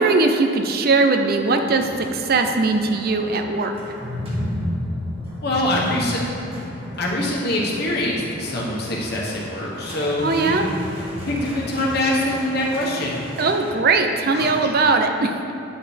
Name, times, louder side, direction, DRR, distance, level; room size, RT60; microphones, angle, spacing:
voice 1, 0.0-3.7 10.2-10.7 13.4-15.5, right 3 dB, 55° right, 5 dB, 0.5 m, -20 dB
sound 1, 1.4-13.7, left 1 dB, 30° right, 1.3 m, -33 dB
voice 2, 5.4-6.2 6.5-10.9 11.3-13.2 14.3-14.7, left 1 dB, 60° left, -3 dB, 1.3 m, -24 dB
9.3 x 5.8 x 3.4 m, 2.7 s
head